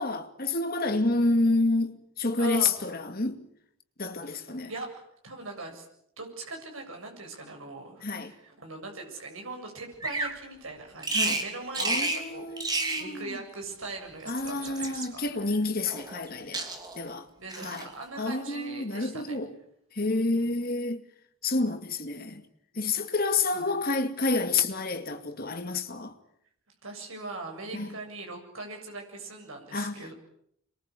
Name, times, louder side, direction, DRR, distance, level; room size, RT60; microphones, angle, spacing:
voice 1, 0.0-3.4 4.0-4.7 8.0-8.3 11.1-11.4 11.8-13.4 14.3-16.7 17.0-17.3 17.6-17.9 18.2-19.5 19.9-21.0 21.4-22.4 22.7-26.2 27.7-28.0 29.7-30.1, left 3 dB, 45° left, 2.4 m, -29 dB
voice 2, 2.4-2.7 4.2-5.9 6.2-15.6 17.4-19.4 20.3-20.6 23.5-23.7 26.8-30.1, right 2 dB, 75° right, 7.4 m, -41 dB
Bird vocalization bird call bird song, 10.0-10.4 11.0-11.5 11.7-12.2 12.6-13.1 14.1-15.1 15.8-16.3 16.5-17.0 17.5-17.9, right 2 dB, 20° right, 3.1 m, -30 dB
26.5 x 22.5 x 8.5 m
head